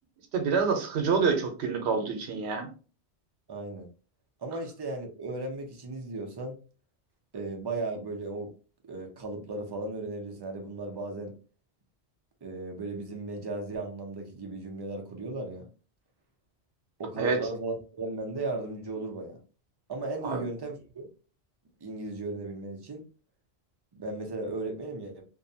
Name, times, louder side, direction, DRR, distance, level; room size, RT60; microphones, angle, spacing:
voice 1, 0.3-2.7 17.2-17.4 20.2-20.4, right 5 dB, 80° right, 0.9 m, -27 dB
voice 2, 3.5-3.9 4.4-6.6 7.3-8.5 8.8-11.3 12.4-15.7 17.0-19.4 19.9-21.1 21.8-23.0 23.9-25.2, right 2 dB, 35° right, 0.4 m, -36 dB
2.6 x 2.1 x 2.6 m
omnidirectional pair, 1.1 m